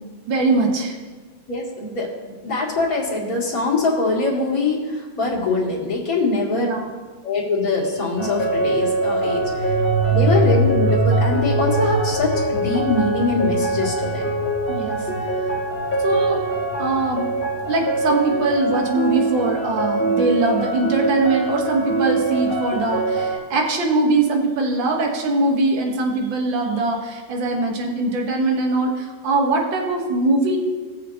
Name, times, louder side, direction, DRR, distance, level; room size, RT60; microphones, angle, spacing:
voice 1, 0.3-0.9 6.6-6.9 14.7-15.0 16.0-16.4 16.8-17.3 17.7-30.6, right 2 dB, 70° right, 1 dB, 2.1 m, -21 dB
voice 2, 1.5-2.1 2.4-6.7 7.2-9.7 10.1-14.3, left 3 dB, 45° left, -5 dB, 2.8 m, -23 dB
sound 1, 8.2-23.4, right 2 dB, 5° left, 2.6 m, -24 dB
sound 2, 9.4-17.8, right 2 dB, 45° right, 1.6 m, -24 dB
19.0 x 7.0 x 2.9 m, 1.4 s
omnidirectional pair, 2.2 m